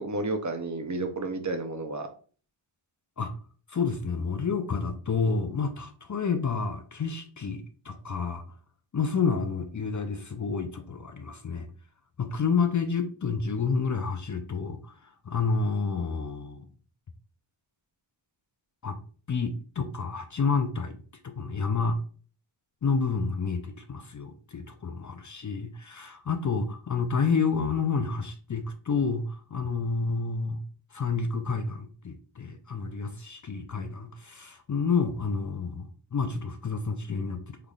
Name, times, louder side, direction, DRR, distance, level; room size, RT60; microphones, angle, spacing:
voice 1, 0.0-2.1, right 2 dB, 40° right, 0.6 m, -31 dB
voice 2, 3.7-8.4 8.9-11.7 12.2-16.7 18.8-19.0 19.3-21.0 21.2-22.0 22.8-30.6 30.9-37.7, left 5 dB, 40° left, 0.5 m, -29 dB
3.8 x 3.3 x 2.3 m
wide cardioid pair, 100°, 48 cm